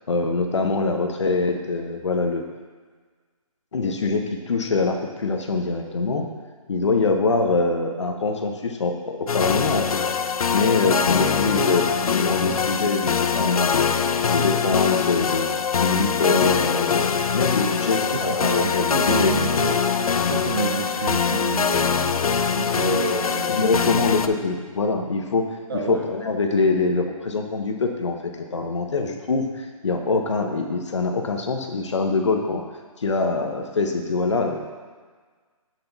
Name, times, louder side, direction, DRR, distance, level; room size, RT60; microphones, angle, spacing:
voice 1, 0.1-2.4 3.7-6.3 6.7-10.0 10.5-13.8 14.3-15.5 15.8-19.3 23.5-25.5 25.7-32.6 33.0-34.7, left 3 dB, 55° left, 4 dB, 1.0 m, -24 dB
sound 1, 9.3-24.3, left 6 dB, 80° left, 0.5 m, -23 dB
voice 2, 10.8-11.2 18.1-19.8 20.3-24.3 25.7-26.0, right 4 dB, 40° right, 2 dB, 0.7 m, -29 dB
8.0 x 6.6 x 4.0 m, 1.5 s
hypercardioid pair, 170°, 18 cm